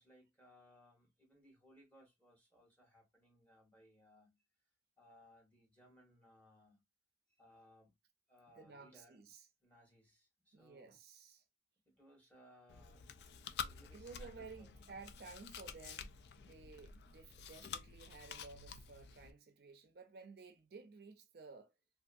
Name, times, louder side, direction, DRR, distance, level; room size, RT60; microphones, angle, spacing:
voice 1, 0.0-4.4 5.0-6.8 7.4-7.9 8.3-9.2 9.6-10.9 11.9-13.1 13.4-14.8 16.4-16.8, equal, 10° left, 1.1 m, -65 dB
voice 2, 8.5-9.5 10.5-11.4 13.9-21.7, right 4 dB, 60° right, 0.5 m, -55 dB
Chewing mastication, 12.7-19.3, left 6 dB, 65° left, 0.3 m, -49 dB
2.6 x 2.5 x 2.4 m
head